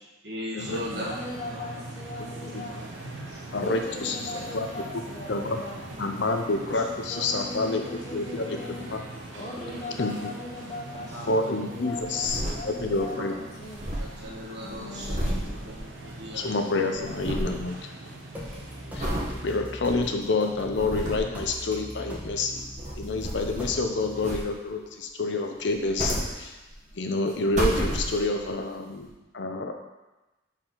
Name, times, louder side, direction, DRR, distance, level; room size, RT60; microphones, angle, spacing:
voice 1, 0.2-1.1 1.5-1.6 2.3-2.9 3.3-4.2 4.4-4.5 4.9-5.1 5.9-6.7 7.2-7.3 7.6-8.2 8.8-10.3 10.9-13.5 14.0-16.4 16.9-17.4, equal, 60° right, -4 dB, 1.5 m, -41 dB
sound 1, 0.6-19.6, right 2 dB, 85° right, 0.8 m, -42 dB
voice 2, 0.9-2.8 3.6-6.0 6.7-8.9 9.3-13.8 14.6-15.6, left 2 dB, 35° left, -1 dB, 0.9 m, -39 dB
voice 3, 2.2-2.6 3.0-3.3 3.5-4.7 5.3-5.6 6.0-7.8 8.1-9.0 10.0-10.3 11.3-13.3 16.3-17.9 18.9-22.6 23.0-26.6 26.9-29.1 29.3-29.8, left 3 dB, 65° left, 4 dB, 0.6 m, -28 dB
sound 2, 12.1-13.1 13.3-13.4 13.6-16.4 16.6-17.6 18.1-18.4 19.0-19.3 19.9-20.0 20.5-21.4 22.4-23.8 24.2-24.8 25.6-26.9 27.3-28.5 29.1-29.2, equal, 35° right, 1.1 m, -32 dB
sound 3, 18.3-24.3, equal, 10° right, 0.9 m, -40 dB
6.0 x 4.5 x 3.8 m, 1.1 s
head